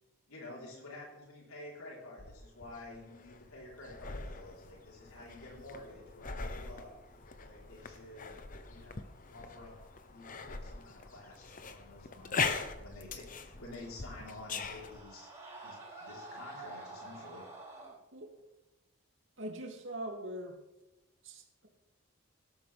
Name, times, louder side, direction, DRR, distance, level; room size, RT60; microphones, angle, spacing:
voice 1, 0.3-7.0 7.4-8.4 8.6-9.1 9.3-9.8 10.1-15.3 15.6-17.5, left 2 dB, 80° left, -3 dB, 4.4 m, -50 dB
sound 1, 2.2-15.0, left 4 dB, 40° left, 0.9 m, -41 dB
Screaming, 13.5-18.0, right 2 dB, 15° right, 4.9 m, -49 dB
voice 2, 19.4-20.6 21.2-21.7, right 1 dB, 60° right, 0 dB, 3.0 m, -42 dB
18.0 x 13.0 x 3.6 m, 0.95 s
head